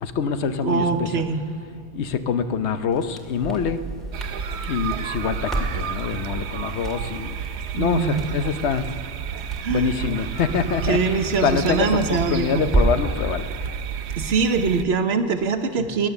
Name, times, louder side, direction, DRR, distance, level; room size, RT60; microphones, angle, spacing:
voice 1, 0.0-1.1 1.9-3.8 4.6-7.3 7.7-8.9 9.7-13.5 15.8-15.9, left 6 dB, 90° left, 10 dB, 1.0 m, -25 dB
voice 2, 0.6-1.5 7.8-8.3 9.6-9.9 10.9-12.7 14.2-16.1, right 4 dB, 70° right, 7 dB, 1.2 m, -23 dB
Crackle, 2.9-13.2, right 2 dB, ahead, 1.9 m, -31 dB
sound 1, 4.1-14.8, right 8 dB, 85° right, 0.9 m, -31 dB
18.5 x 10.5 x 7.0 m, 2.4 s
omnidirectional pair, 1.1 m